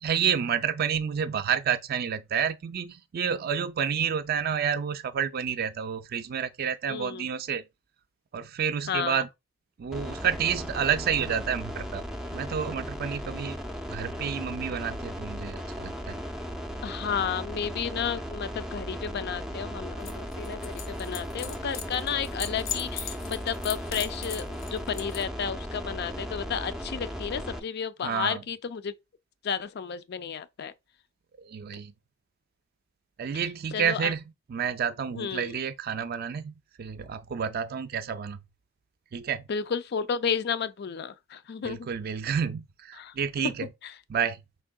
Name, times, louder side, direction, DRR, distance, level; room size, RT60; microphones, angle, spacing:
voice 1, 0.0-7.6 8.3-9.3 9.8-12.0 12.3-13.6 13.9-16.1 28.0-28.4 31.4-31.9 33.2-34.2 34.5-38.4 39.1-39.4 41.5-43.7 44.1-44.4, right 7 dB, 50° right, 0.4 m, -29 dB
voice 2, 6.9-7.3 8.9-9.2 16.8-28.9 29.4-30.7 33.3-33.4 33.7-34.1 35.1-35.5 39.5-41.9 43.0-43.1 43.4-43.5 43.8-43.9, left 7 dB, 55° left, 0.4 m, -32 dB
sound 1, 9.9-27.6, equal, 5° right, 0.5 m, -37 dB
sound 2, 20.0-25.2, left 8 dB, 85° left, 0.8 m, -40 dB
5.3 x 3.6 x 2.2 m
head